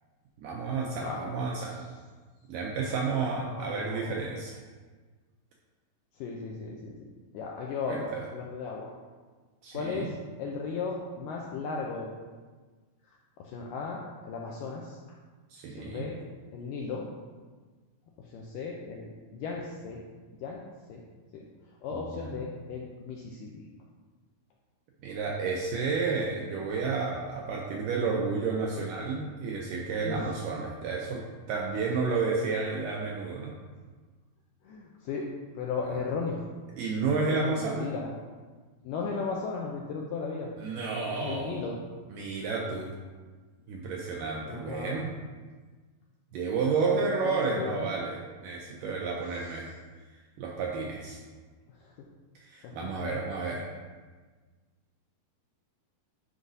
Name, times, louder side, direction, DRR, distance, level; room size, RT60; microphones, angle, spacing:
voice 1, 0.4-1.8 2.5-4.6 7.9-8.2 9.6-10.1 15.5-16.1 21.9-22.4 25.0-31.2 31.5-33.5 36.8-37.9 40.6-41.6 42.1-42.9 43.7-45.1 46.3-49.7 50.4-51.2 52.4-53.7, right 4 dB, 80° right, -1 dB, 1.9 m, -31 dB
voice 2, 1.0-1.3 3.5-4.3 6.2-7.1 7.3-8.9 9.7-12.1 13.4-15.0 15.7-16.2 16.5-17.1 18.2-20.0 20.4-20.6 20.9-21.1 21.3-21.5 21.8-23.6 29.9-30.3 34.6-35.3 35.6-36.4 37.3-38.1 38.8-40.5 41.2-41.8 44.5-45.0 46.8-47.9 49.3-49.5 51.7-52.1 52.6-52.8, left 4 dB, 85° left, -1 dB, 1.9 m, -36 dB
10.0 x 4.8 x 2.7 m, 1.4 s
omnidirectional pair, 4.4 m